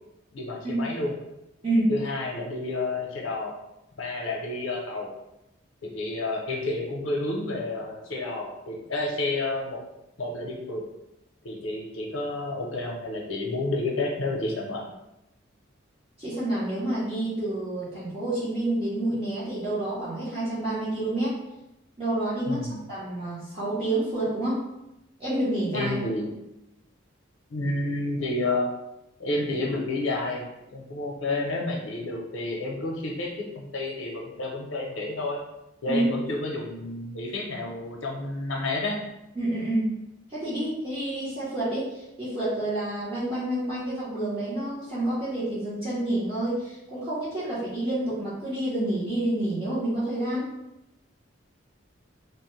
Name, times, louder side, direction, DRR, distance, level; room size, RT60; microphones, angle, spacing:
voice 1, 0.3-1.1 1.9-3.6 4.0-5.1 5.9-9.8 10.2-10.8 11.4-14.8 22.5-22.8 25.7-26.3 27.5-28.7 29.2-30.4 30.7-35.4 35.8-39.0, left 2 dB, 80° left, 0 dB, 0.6 m, -30 dB
voice 2, 16.2-21.4 22.0-24.6 25.2-26.0 35.9-36.1 39.4-39.9 40.3-50.5, right 1 dB, 30° right, -11 dB, 0.8 m, -28 dB
2.9 x 2.1 x 3.0 m, 0.90 s
head